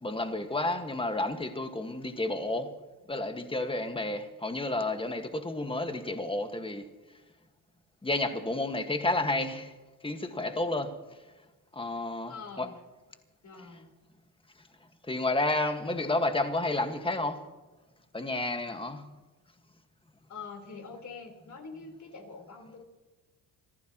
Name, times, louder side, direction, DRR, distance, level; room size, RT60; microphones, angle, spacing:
voice 1, 0.0-2.7 3.1-6.9 8.0-9.7 10.0-11.0 11.7-12.7 15.1-17.4 18.1-19.1, left 2 dB, 10° left, 1.8 m, -31 dB
voice 2, 12.2-12.8 13.4-13.9 20.3-22.9, left 4 dB, 45° left, 4.3 m, -45 dB
27.5 x 14.5 x 3.1 m
cardioid pair, 90°, 41 cm